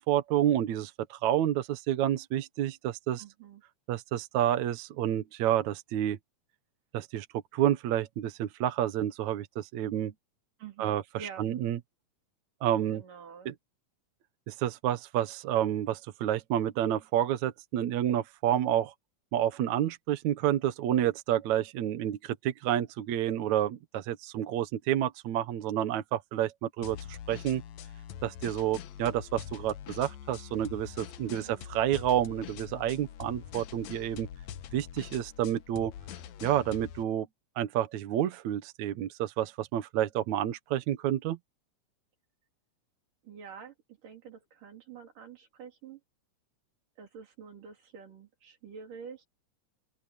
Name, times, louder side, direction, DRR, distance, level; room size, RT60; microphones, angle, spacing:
voice 1, 0.0-3.2 3.9-6.2 6.9-7.3 7.5-10.1 10.8-11.8 12.6-13.0 13.5-13.6 14.5-18.9 19.3-27.6 28.2-34.3 34.7-35.9 36.4-37.3 37.6-41.4, right 11 dB, 70° right, 2.3 m, -29 dB
voice 2, 3.2-3.6 10.6-11.5 12.9-13.5 31.2-31.7 43.2-46.0 47.0-49.3, right 6 dB, 85° right, 4.9 m, -47 dB
sound 1, 26.8-37.0, left 10 dB, 70° left, 2.1 m, -44 dB
open air
omnidirectional pair, 3.7 m